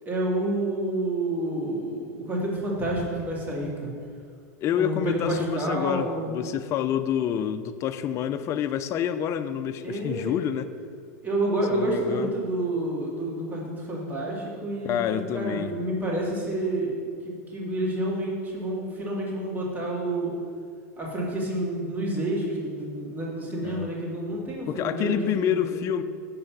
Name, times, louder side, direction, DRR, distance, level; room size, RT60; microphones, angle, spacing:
voice 1, 0.0-3.9 4.8-6.3 9.8-10.4 11.2-17.0 17.2-20.3 21.0-25.7, right 1 dB, 20° right, -3 dB, 2.3 m, -29 dB
voice 2, 4.6-10.7 11.7-12.3 14.8-15.7 23.6-23.9 24.7-26.0, left 9 dB, 35° left, 10 dB, 0.4 m, -28 dB
6.7 x 5.5 x 7.1 m, 2.3 s
supercardioid pair, 125°, 9 cm